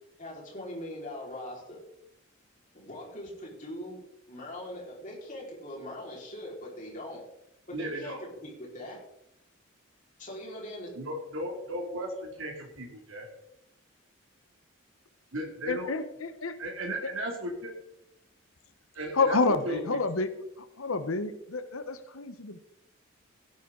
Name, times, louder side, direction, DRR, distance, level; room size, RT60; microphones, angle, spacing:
voice 1, 0.2-1.8 2.7-7.3 7.7-9.0 10.2-10.9, left 1 dB, 40° left, -3 dB, 4.5 m, -41 dB
voice 2, 7.7-8.2 11.0-13.3 15.3-15.9 16.6-17.7 18.9-19.4 19.6-20.0, right 1 dB, 70° right, 0 dB, 2.5 m, -35 dB
voice 3, 15.7-16.5 19.1-20.3 20.6-22.6, left 3 dB, 85° left, 10 dB, 1.0 m, -29 dB
17.0 x 10.0 x 3.8 m, 0.82 s
head